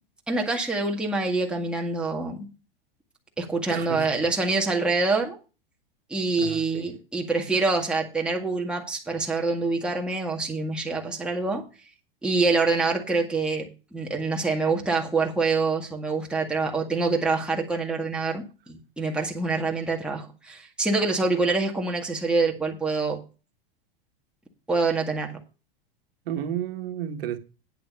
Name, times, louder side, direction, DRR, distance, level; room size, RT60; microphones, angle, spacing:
voice 1, 0.3-2.5 3.4-5.4 6.1-11.6 12.2-23.2 24.7-25.4, right 3 dB, 5° right, 1.9 m, -26 dB
voice 2, 3.7-4.1 6.4-6.9 26.2-27.4, right 9 dB, 75° right, 1.6 m, -32 dB
9.5 x 6.7 x 5.6 m
hypercardioid pair, 115°, 29 cm